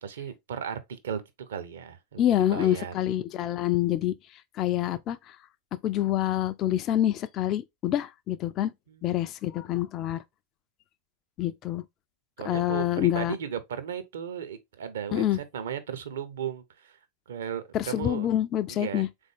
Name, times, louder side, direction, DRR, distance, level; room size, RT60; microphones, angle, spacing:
voice 1, 0.0-2.9 8.9-9.1 12.4-17.0 17.3-18.3 18.7-19.0, right 8 dB, 60° right, 0.7 m, -36 dB
voice 2, 2.2-5.4 5.8-8.7 9.0-10.2 11.4-11.8 12.4-13.3 15.1-15.4 17.7-19.1, left 12 dB, 35° left, 0.3 m, -27 dB
3.8 x 3.5 x 3.4 m
figure-of-eight pair, 90°, 0 cm